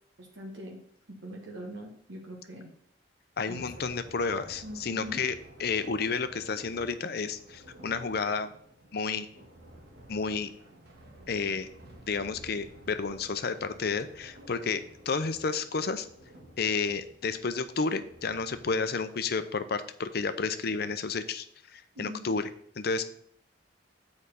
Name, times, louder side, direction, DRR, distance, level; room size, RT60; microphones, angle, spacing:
voice 1, 0.2-0.8 1.1-2.7 3.5-3.6 4.6-5.2 21.9-22.3, equal, 80° right, -1 dB, 1.4 m, -42 dB
voice 2, 3.4-8.5 8.9-9.3 10.1-10.5 11.3-11.7 12.1-16.1 16.6-21.5 21.7-22.5 22.8-23.0, left 4 dB, 55° left, 11 dB, 0.6 m, -31 dB
sound 1, 3.5-18.7, right 1 dB, 60° right, 1.6 m, -52 dB
6.7 x 4.8 x 5.4 m, 0.65 s
head